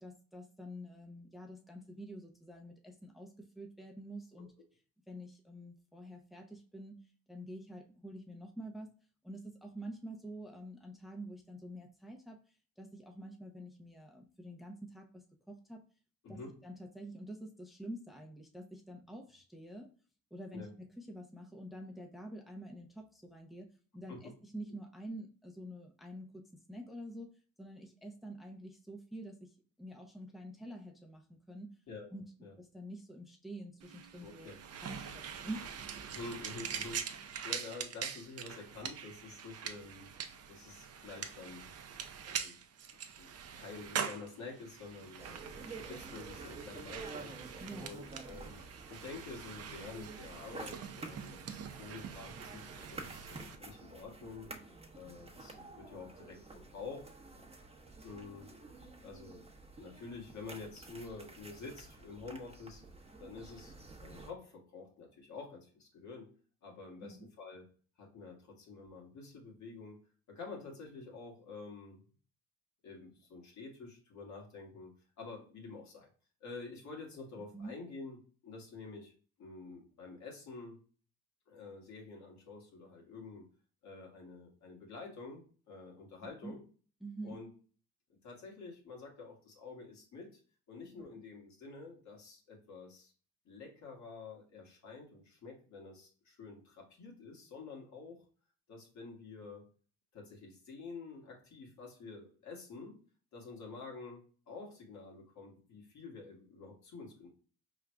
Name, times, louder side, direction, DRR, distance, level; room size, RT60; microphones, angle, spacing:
voice 1, 0.0-4.5 5.1-7.0 7.3-8.9 9.2-15.1 15.5-15.8 16.3-19.9 20.3-26.4 26.7-31.7 32.1-32.2 32.6-34.5 34.8-36.0 47.6-48.0 67.0-67.3 77.5-77.7 86.4-86.6 87.0-87.4 91.0-91.1, right 1 dB, ahead, 1 dB, 0.7 m, -47 dB
sound 1, 33.8-53.5, right 7 dB, 55° right, 0.6 m, -44 dB
voice 2, 34.2-34.6 36.0-40.1 40.5-41.7 42.3-42.6 43.2-47.3 47.8-48.6 48.9-52.6 52.9-54.5 54.9-57.1 58.0-58.5 59.0-59.5 59.8-62.8 63.2-66.3 66.6-67.7 68.0-70.0 70.3-72.0 72.8-76.1 76.4-79.1 79.4-80.8 81.5-83.5 83.8-86.6 87.2-87.5 88.1-90.4 90.7-93.1 93.5-98.2 98.7-99.7 100.1-103.0 103.3-107.3, left 4 dB, 65° left, -1 dB, 1.8 m, -49 dB
sound 2, 45.2-64.3, right 3 dB, 20° right, 1.0 m, -50 dB
4.6 x 3.7 x 2.2 m, 0.40 s
cardioid pair, 90°, 30 cm